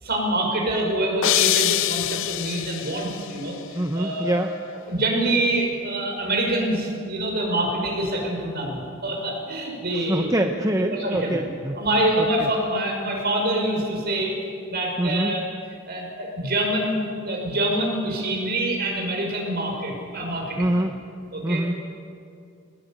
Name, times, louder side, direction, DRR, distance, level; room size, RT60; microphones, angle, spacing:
voice 1, 0.0-4.3 4.9-10.3 10.9-11.4 11.7-14.3 14.7-15.4 15.9-20.7 21.3-21.7, right 1 dB, 50° right, 1 dB, 6.1 m, -25 dB
sound 1, 1.2-3.3, left 14 dB, 65° left, 0.5 m, -24 dB
voice 2, 3.7-4.5 10.1-11.8 12.2-12.5 15.0-15.3 20.6-20.9 21.4-21.8, right 1 dB, 15° right, 4 dB, 0.9 m, -24 dB
20.5 x 19.5 x 9.2 m, 2.4 s
head